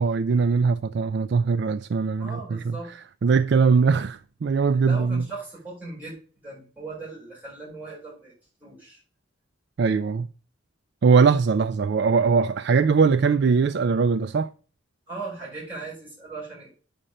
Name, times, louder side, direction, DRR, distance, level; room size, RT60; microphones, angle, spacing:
voice 1, 0.0-2.7 3.2-5.3 9.8-10.3 11.0-14.5, right 5 dB, 55° right, 0.3 m, -21 dB
voice 2, 2.2-2.9 4.8-6.2 6.4-8.3 8.6-9.0 15.1-16.7, right 3 dB, 10° right, 4.9 m, -38 dB
9.8 x 4.4 x 6.4 m
head